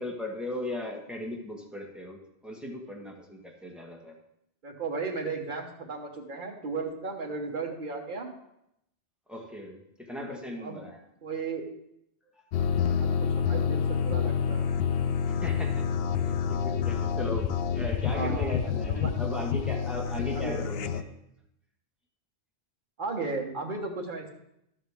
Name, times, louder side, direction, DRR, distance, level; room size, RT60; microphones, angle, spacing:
voice 1, 0.0-4.1 9.3-11.0 15.2-15.8 16.3-21.1, left 1 dB, ahead, -1 dB, 1.3 m, -37 dB
voice 2, 4.6-8.3 10.6-10.8 11.2-11.6 12.8-14.6 18.1-18.5 18.9-19.1 20.3-20.6 23.0-24.3, right 4 dB, 50° right, 2 dB, 1.3 m, -35 dB
sound 1, 12.5-21.0, left 7 dB, 70° left, 0.8 m, -28 dB
11.5 x 7.3 x 3.5 m, 0.81 s
omnidirectional pair, 1.1 m